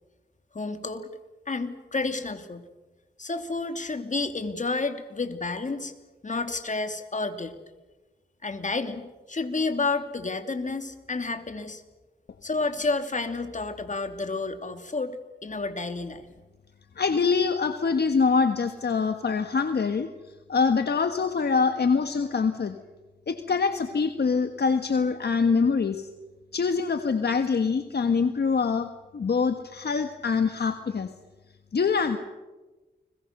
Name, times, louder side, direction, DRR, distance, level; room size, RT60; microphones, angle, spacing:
voice 1, 0.5-1.1 1.5-2.7 3.2-5.9 6.2-7.6 8.4-11.8 12.4-16.3, left 3 dB, 40° left, 7 dB, 2.7 m, -30 dB
voice 2, 17.0-20.1 20.5-22.8 23.3-26.1 26.5-31.1 31.7-32.2, left 5 dB, 60° left, 8 dB, 1.3 m, -24 dB
30.0 x 21.5 x 6.6 m, 1.2 s
cardioid pair, 75°, 19 cm